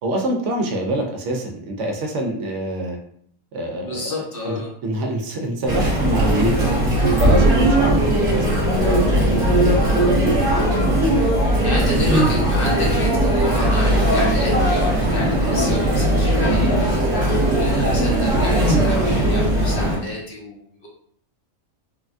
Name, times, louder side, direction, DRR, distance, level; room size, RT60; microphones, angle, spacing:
voice 1, 0.0-3.0 3.5-6.7 7.2-8.6 9.0-9.7, right 1 dB, 65° right, 2 dB, 0.9 m, -25 dB
voice 2, 3.8-4.7 9.6-9.8 11.6-16.9 17.2-20.9, left 1 dB, 50° left, -3 dB, 0.8 m, -30 dB
Chatter, 5.7-20.0, right 1 dB, 45° right, 1.0 m, -18 dB
3.3 x 2.2 x 2.5 m, 0.64 s
omnidirectional pair, 1.4 m